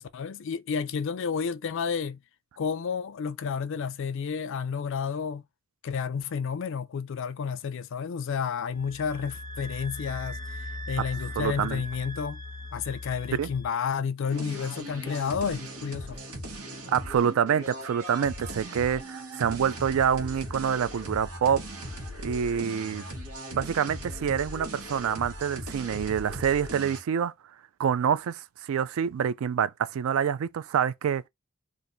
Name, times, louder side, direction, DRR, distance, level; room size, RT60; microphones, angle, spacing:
voice 1, 0.0-2.2 2.6-5.4 5.8-10.4 10.9-12.4 12.7-16.2, left 6 dB, 65° left, 0.4 m, -31 dB
sound 1, 8.7-13.7, left 1 dB, 15° left, 0.7 m, -39 dB
voice 2, 11.4-11.8 13.4-13.5 16.9-21.6 22.2-23.0 23.5-27.3 27.8-31.2, right 8 dB, 70° right, 0.3 m, -26 dB
sound 2, 14.3-27.0, right 1 dB, 90° right, 1.3 m, -39 dB
2.6 x 2.5 x 4.2 m
head